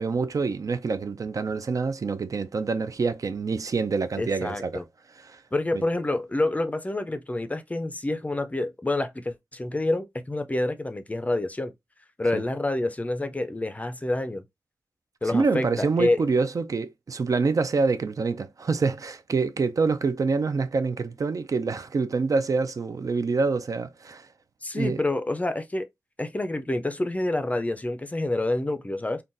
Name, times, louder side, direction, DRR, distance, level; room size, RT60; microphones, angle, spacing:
voice 1, 0.0-4.8 5.3-5.4 5.7-5.8 12.3-12.4 15.2-24.3 24.7-25.0, right 4 dB, 60° right, 0.4 m, -26 dB
voice 2, 4.2-4.8 5.5-11.7 12.2-14.4 15.2-16.2 24.6-25.9 26.2-29.2, left 2 dB, 20° left, 0.4 m, -27 dB
3.8 x 2.2 x 2.5 m
wide cardioid pair, 85°, 7 cm